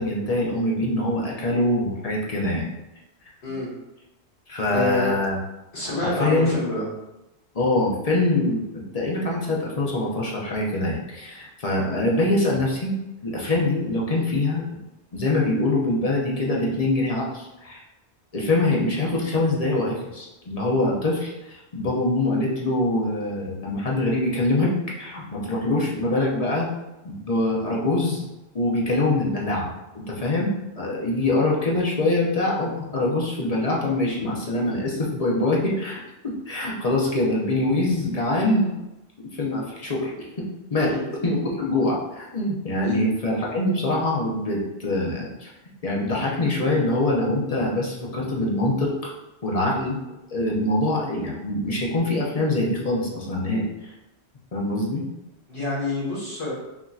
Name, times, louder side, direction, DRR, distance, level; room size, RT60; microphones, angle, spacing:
voice 1, 0.0-2.7 4.5-5.4 6.0-6.5 7.5-12.9 13.2-14.6 15.1-17.8 18.3-26.7 27.0-28.2 28.5-29.7 29.9-38.8 39.2-40.9 41.2-45.5 45.8-49.1 49.4-50.0 50.3-53.9 54.5-55.0, left 2 dB, 40° left, -3 dB, 0.8 m, -24 dB
voice 2, 4.7-5.1 5.7-6.9 40.8-41.1 42.8-43.0 55.5-56.5, left 2 dB, 70° left, -9 dB, 1.9 m, -27 dB
5.8 x 2.8 x 2.4 m, 0.98 s
omnidirectional pair, 1.1 m